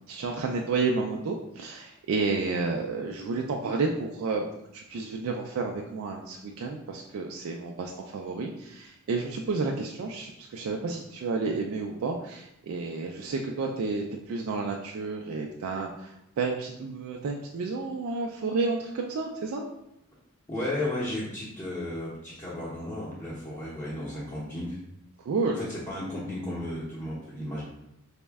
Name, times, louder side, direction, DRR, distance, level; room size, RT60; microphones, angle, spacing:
voice 1, 0.1-4.4 4.7-19.6 25.3-25.6, right 4 dB, 65° right, 1 dB, 0.3 m, -31 dB
voice 2, 20.5-24.8 25.5-27.6, left 1 dB, 15° left, -9 dB, 0.7 m, -34 dB
4.1 x 2.1 x 3.4 m, 0.87 s
head